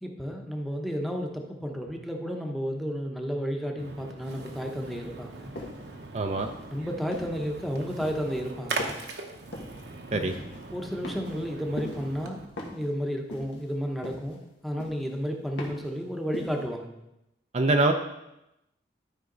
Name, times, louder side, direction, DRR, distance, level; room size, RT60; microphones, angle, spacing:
voice 1, 0.0-5.5 6.7-8.9 10.1-10.4 10.7-16.9, equal, ahead, 2 dB, 0.9 m, -32 dB
Splash splatter, 3.8-12.5, right 3 dB, 70° right, 1.0 m, -40 dB
sound 1, 5.5-5.9 6.4-7.5 8.0-8.3 8.8-9.1 9.5-9.8 10.3-10.6 11.0-11.5 11.8-12.1 12.6-12.9 13.3-13.7 14.0-14.4 14.8-15.1 15.6-15.9 16.3-16.6, left 1 dB, 90° left, 1.7 m, -40 dB
voice 2, 6.1-6.5 10.1-10.4 17.5-17.9, right 2 dB, 40° right, 4 dB, 0.5 m, -24 dB
12.5 x 5.0 x 3.9 m, 0.88 s
head